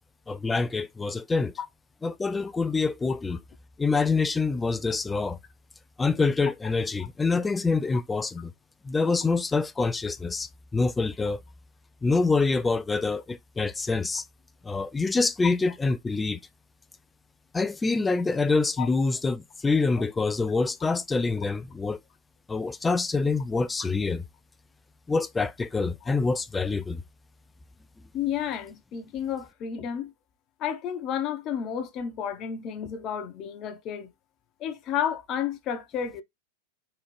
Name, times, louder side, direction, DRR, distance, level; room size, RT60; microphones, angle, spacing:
voice 1, 0.3-1.5 2.0-3.4 3.8-5.4 6.0-8.5 8.8-11.4 12.0-14.2 14.6-16.4 17.5-22.0 22.5-24.2 25.1-27.0, left 4 dB, 10° left, 0.3 m, -26 dB
voice 2, 28.1-30.1 30.6-34.1 34.6-36.2, left 8 dB, 35° left, 0.7 m, -31 dB
3.8 x 2.9 x 3.1 m
figure-of-eight pair, 90°, 0 cm